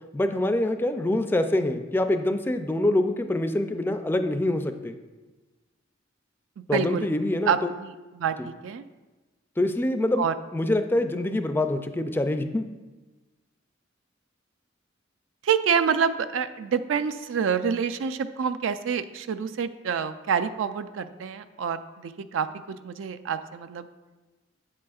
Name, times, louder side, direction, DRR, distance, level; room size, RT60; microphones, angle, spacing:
voice 1, 0.1-5.0 6.7-7.7 8.4-8.5 9.6-12.7, left 1 dB, 10° left, 8 dB, 0.3 m, -25 dB
voice 2, 6.7-7.1 7.5-8.8 10.2-10.3 15.4-22.5 22.8-23.9, right 7 dB, 85° right, 11 dB, 0.4 m, -27 dB
8.5 x 7.4 x 2.4 m, 1.2 s
head